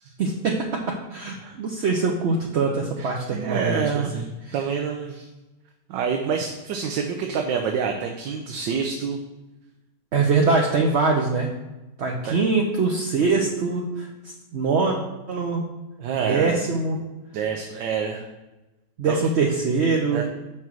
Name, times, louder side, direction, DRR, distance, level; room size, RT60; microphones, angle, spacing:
voice 1, 0.2-4.2 10.1-11.5 12.0-15.0 15.3-15.6 16.2-17.0 19.0-20.2, right 4 dB, 60° right, 0 dB, 0.7 m, -23 dB
voice 2, 1.4-1.9 3.0-4.3 4.5-5.3 5.9-9.2 12.2-12.5 16.0-16.6 17.3-18.3 19.1-19.2 20.1-20.2, right 6 dB, 90° right, 3 dB, 1.3 m, -27 dB
5.8 x 4.4 x 6.0 m, 1.1 s
omnidirectional pair, 1.9 m